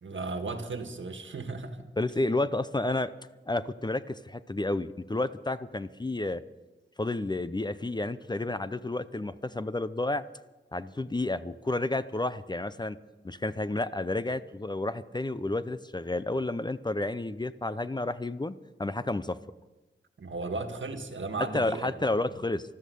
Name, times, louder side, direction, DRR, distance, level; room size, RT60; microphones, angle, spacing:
voice 1, 0.0-1.8 20.2-21.9, right 3 dB, 80° right, 6 dB, 1.6 m, -35 dB
voice 2, 2.0-3.1 3.5-6.4 7.0-10.2 10.7-13.0 13.2-18.5 18.8-19.4 21.5-22.6, left 2 dB, 20° left, 14 dB, 0.6 m, -31 dB
14.0 x 13.0 x 6.9 m, 1.1 s
wide cardioid pair, 85°, 20 cm